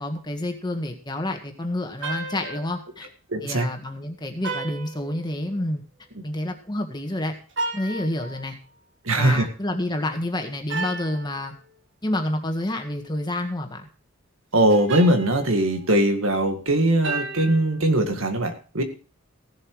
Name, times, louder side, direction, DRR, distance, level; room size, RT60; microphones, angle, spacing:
voice 1, 0.0-3.1 3.4-5.8 6.2-7.3 7.7-8.6 9.1-11.5 12.0-13.9, left 1 dB, 20° left, 4 dB, 1.7 m, -28 dB
sound 1, 2.0-2.8 4.4-5.6 7.5-8.5 10.7-11.3 14.7-16.0 17.0-17.8, right 3 dB, 55° right, 2.0 m, -33 dB
voice 2, 3.3-3.7 9.1-9.5 14.5-18.8, right 1 dB, 75° right, 6 dB, 2.0 m, -21 dB
16.0 x 7.8 x 4.8 m, 0.36 s
head